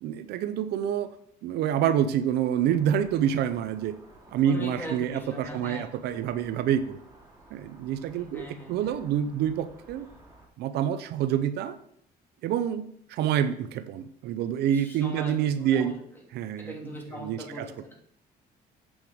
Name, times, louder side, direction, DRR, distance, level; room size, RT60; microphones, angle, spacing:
voice 1, 0.0-1.1 1.4-4.0 4.3-7.0 7.5-10.1 10.6-11.8 12.4-15.9 16.3-17.7, right 9 dB, 75° right, 11 dB, 0.6 m, -27 dB
sound 1, 2.6-10.5, right 1 dB, 15° right, 3.2 m, -54 dB
voice 2, 4.4-5.9 8.1-8.9 14.7-15.9 16.6-17.9, left 1 dB, 10° left, -2 dB, 3.0 m, -41 dB
8.0 x 6.1 x 5.1 m, 0.69 s
cardioid pair, 110°, 17 cm